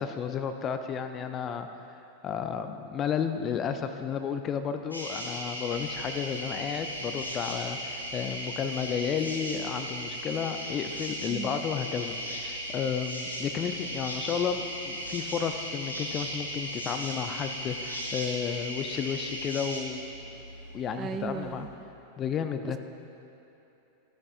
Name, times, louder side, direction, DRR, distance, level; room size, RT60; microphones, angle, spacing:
voice 1, 0.0-1.7 2.2-20.0 20.7-21.7 22.2-22.8, left 7 dB, 30° left, 8 dB, 0.5 m, -32 dB
sound 1, 4.9-19.8, equal, 85° left, 1.9 m, -36 dB
sound 2, 5.7-21.7, right 1 dB, 70° right, 1.9 m, -48 dB
voice 2, 11.3-11.6 21.0-21.7, right 6 dB, 25° right, 8 dB, 0.5 m, -36 dB
16.0 x 9.6 x 2.5 m, 3.0 s
figure-of-eight pair, 90°, 0 cm